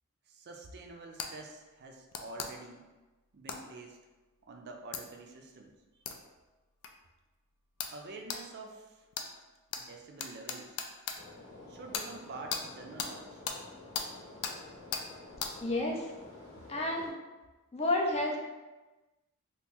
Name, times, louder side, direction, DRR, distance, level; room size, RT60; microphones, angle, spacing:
voice 1, 0.3-2.9 3.3-4.0 4.5-5.7 7.9-9.1 9.8-10.8 11.7-13.4, right 3 dB, 50° right, 2 dB, 0.4 m, -47 dB
sound 1, 1.2-1.3 2.1-2.5 3.5-3.6 4.9-5.0 6.1-6.2 6.8-6.9 7.8-8.0 8.3-8.4 9.1-9.3 9.7-9.8 10.2-11.2 11.9-12.1 12.5-12.6 13.0-13.1 13.5-13.6 13.9-14.1 14.4-14.6 14.9-15.1 15.4-15.5, left 6 dB, 85° left, 0.4 m, -36 dB
sound 2, 11.1-17.1, left 2 dB, 70° left, 0.9 m, -50 dB
voice 2, 15.6-16.1 16.7-17.1 17.7-18.4, left 2 dB, 25° left, 0 dB, 0.4 m, -30 dB
2.9 x 2.5 x 3.5 m, 1.2 s
head